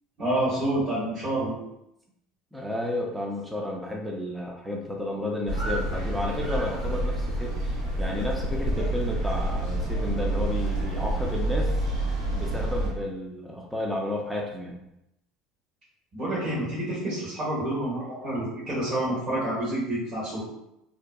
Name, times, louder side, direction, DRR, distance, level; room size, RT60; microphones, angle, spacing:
voice 1, 0.2-1.5 16.1-20.4, right 1 dB, 45° right, -10 dB, 1.2 m, -28 dB
voice 2, 2.5-11.7 12.3-14.8, left 1 dB, 5° right, -1 dB, 0.5 m, -32 dB
sound 1, 5.5-12.9, right 1 dB, 65° right, 1.2 m, -28 dB
2.6 x 2.2 x 2.2 m, 0.84 s
hypercardioid pair, 75°, 0 cm